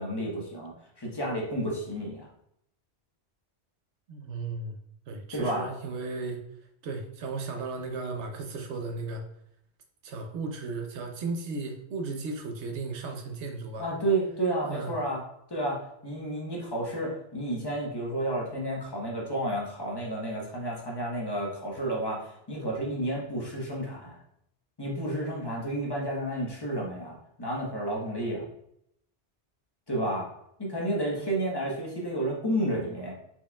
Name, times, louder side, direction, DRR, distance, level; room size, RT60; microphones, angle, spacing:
voice 1, 0.0-2.2 5.3-5.7 13.8-15.2 15.5-24.2 24.8-28.5 29.9-30.3 30.6-33.1, right 1 dB, 20° left, -3 dB, 1.1 m, -31 dB
voice 2, 4.1-4.8 5.1-6.4 6.8-9.2 10.0-13.9 14.7-14.9, right 3 dB, 80° right, 4 dB, 1.0 m, -35 dB
4.4 x 4.2 x 2.3 m, 0.74 s
omnidirectional pair, 1.1 m